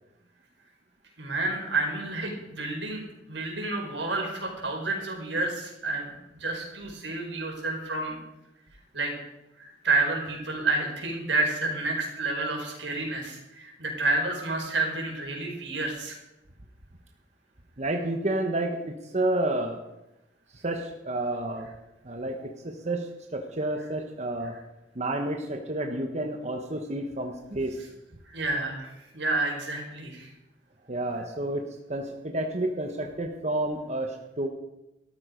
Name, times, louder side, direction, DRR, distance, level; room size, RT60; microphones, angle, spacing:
voice 1, 1.2-6.1 6.4-8.2 8.9-9.1 9.6-16.2 28.3-30.3, right 2 dB, 85° right, 1 dB, 4.8 m, -30 dB
voice 2, 17.8-19.8 20.5-21.7 22.0-24.5 24.9-27.8 30.9-34.5, right 1 dB, 40° right, 3 dB, 1.2 m, -30 dB
13.5 x 13.5 x 5.2 m, 0.93 s
head